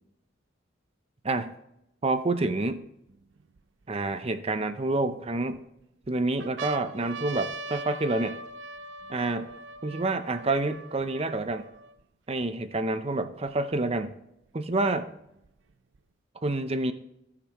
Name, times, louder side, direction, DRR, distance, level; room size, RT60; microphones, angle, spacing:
voice 1, 2.0-2.8 3.9-5.6 6.1-8.4 9.1-9.5 9.8-11.6 12.3-14.1 14.5-15.1 16.4-16.9, right 2 dB, 30° right, 9 dB, 0.7 m, -28 dB
sound 1, 2.1-2.2 2.8-4.1 4.8-5.6 6.0-6.1 6.4-12.0 12.7-12.8 13.0-14.0 15.0-16.0, right 3 dB, 85° right, 0.6 m, -41 dB
17.0 x 6.0 x 3.1 m, 0.82 s
head